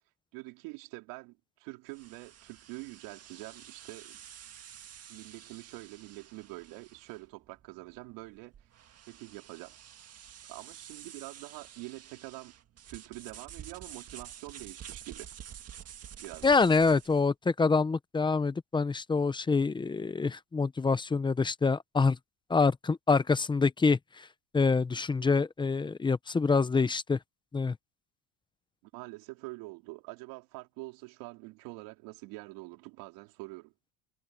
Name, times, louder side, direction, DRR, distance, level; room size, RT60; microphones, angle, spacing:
voice 1, 0.3-4.2 5.1-8.5 9.1-9.8 10.5-12.5 12.9-15.3 16.2-16.5 28.9-33.7, right 24 dB, 80° right, 4.0 m, -45 dB
sound 1, 1.9-17.3, right 9 dB, 35° right, 1.9 m, -50 dB
voice 2, 16.4-22.2 22.5-24.3 24.5-27.2 27.5-27.8, left 4 dB, 10° left, 0.6 m, -26 dB
cardioid pair, 140°, 42 cm